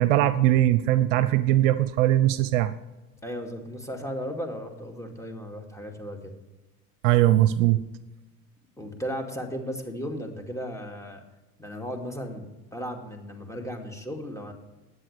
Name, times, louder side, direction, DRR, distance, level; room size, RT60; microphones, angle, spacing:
voice 1, 0.0-2.7 7.0-7.8, right 13 dB, 65° right, 13 dB, 0.7 m, -20 dB
voice 2, 3.2-6.3 8.8-11.2 11.6-12.4 12.7-14.5, equal, 5° left, 4 dB, 2.3 m, -35 dB
20.0 x 8.2 x 3.3 m, 1.1 s
hypercardioid pair, 75°, 42 cm